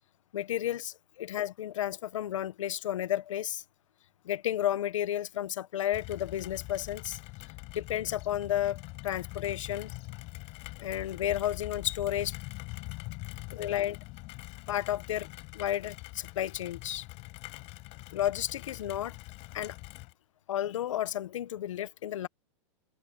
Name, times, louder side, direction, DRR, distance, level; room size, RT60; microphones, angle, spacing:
voice 1, 0.3-3.6 4.2-7.2 7.7-9.9 10.8-12.3 13.5-14.0 14.7-15.3 15.5-17.0 18.1-19.2 19.5-19.8 20.5-22.3, left 11 dB, 80° left, 1.3 m, -32 dB
Rain, 5.9-20.1, left 24 dB, 40° left, 5.8 m, -43 dB
supercardioid pair, 140°, 16 cm